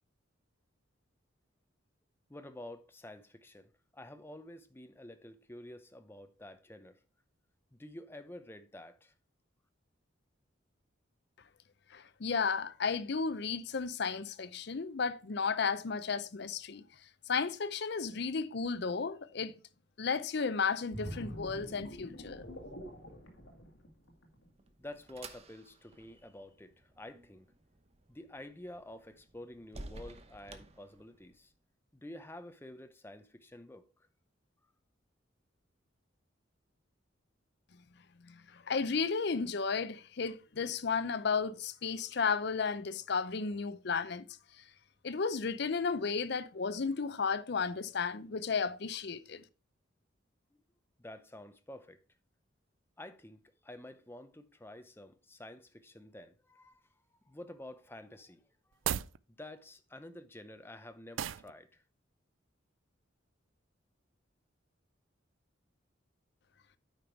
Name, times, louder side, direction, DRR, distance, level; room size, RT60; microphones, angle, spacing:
voice 1, 2.3-7.0 7.7-9.1 24.8-27.5 28.1-31.5 31.9-33.9 51.0-52.0 53.0-56.9 57.3-59.0 59.3-61.8, left 1 dB, 10° left, 0.7 m, -50 dB
voice 2, 11.9-16.8 17.3-19.6 20.0-22.4 38.3-44.3 45.0-49.4, left 5 dB, 55° left, 0.6 m, -33 dB
sound 1, 20.9-24.5 24.9-25.1, equal, 85° left, 1.9 m, -45 dB
sound 2, 24.1-31.5, right 2 dB, 30° right, 0.8 m, -53 dB
sound 3, 58.7-59.2 61.2-61.5, right 10 dB, 80° right, 0.4 m, -34 dB
9.1 x 5.1 x 4.5 m
head